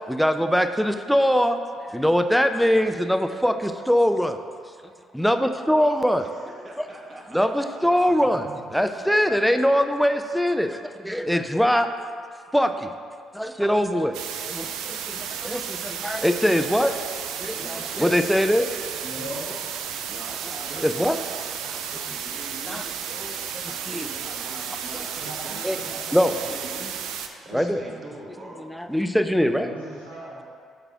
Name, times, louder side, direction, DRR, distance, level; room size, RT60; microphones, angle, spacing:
voice 1, 0.1-1.6 1.9-4.4 5.1-6.3 6.8-6.9 7.3-8.4 8.7-11.9 12.5-12.9 13.3-14.2 14.5-16.9 17.4-18.7 20.8-21.2 22.7-22.8 23.9-24.1 25.6-25.8 26.1-26.3 27.5-27.8 28.6-29.7, equal, ahead, 7 dB, 0.4 m, -22 dB
voice 2, 6.2-8.4 8.8-9.0 17.4-18.2 20.0-21.4 21.7-23.4 23.7-26.2 26.5-27.0 27.4-28.7, right 1 dB, 35° right, -1 dB, 1.3 m, -43 dB
voice 3, 8.0-8.6 19.0-19.4 25.2-26.3 27.4-28.1 29.5-30.4, equal, 85° right, -8 dB, 1.7 m, -40 dB
sound 1, 14.1-27.3, right 8 dB, 65° right, 0.4 m, -33 dB
12.0 x 4.9 x 2.4 m, 2.1 s
figure-of-eight pair, 45°, 0 cm